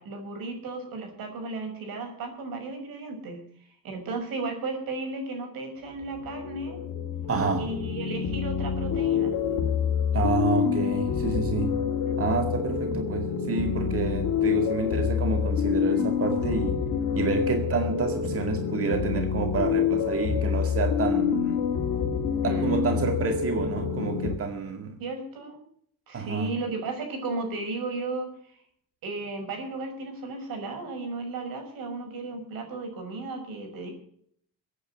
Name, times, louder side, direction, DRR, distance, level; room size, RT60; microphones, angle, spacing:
voice 1, 0.0-3.4 3.8-6.8 7.6-9.3 12.0-12.2 22.4-22.8 25.0-25.6 26.1-28.6 29.0-33.9, right 3 dB, 80° right, 4 dB, 6.1 m, -34 dB
sound 1, 6.0-24.4, left 7 dB, 80° left, 2.1 m, -27 dB
voice 2, 7.3-7.7 10.1-11.8 12.2-16.8 17.2-21.6 22.4-25.0 26.1-26.5, right 5 dB, 40° right, 5 dB, 2.1 m, -29 dB
22.0 x 9.5 x 6.6 m, 0.65 s
cardioid pair, 110°, 34 cm